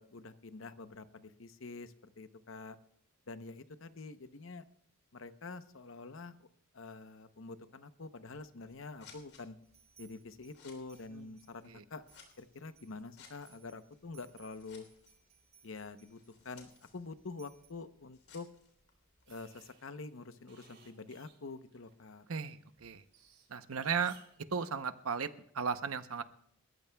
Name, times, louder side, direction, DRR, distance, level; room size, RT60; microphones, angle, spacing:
voice 1, 0.0-2.8 3.3-4.6 5.1-6.4 6.7-9.6 10.0-12.0 12.4-14.9 15.6-18.5 19.3-22.3, left 3 dB, 60° left, 11 dB, 0.8 m, -47 dB
Scissors, 8.2-19.7, left 5 dB, 85° left, 3.4 m, -63 dB
sound 1, 9.6-11.7 12.1-17.7, right 8 dB, 30° right, 4.7 m, -66 dB
sound 2, 19.3-22.2 22.5-24.4, right 6 dB, 50° right, 3.2 m, -62 dB
voice 2, 22.3-23.0 23.5-24.2 24.5-26.2, right 6 dB, 75° right, 11 dB, 0.8 m, -36 dB
29.0 x 14.0 x 2.3 m, 0.68 s
head